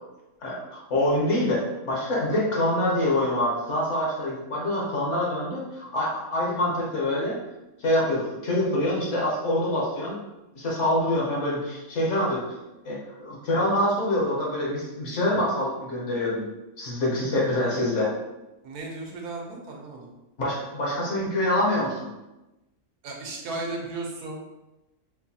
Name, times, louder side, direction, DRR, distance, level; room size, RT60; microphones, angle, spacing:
voice 1, 0.4-7.3 7.8-10.2 10.6-12.4 12.8-16.4 16.8-18.1 20.4-22.1, left 1 dB, 55° left, -4 dB, 1.1 m, -25 dB
voice 2, 18.6-20.1 23.0-24.4, right 2 dB, 80° right, 0 dB, 1.2 m, -35 dB
4.3 x 2.3 x 2.7 m, 0.99 s
omnidirectional pair, 1.6 m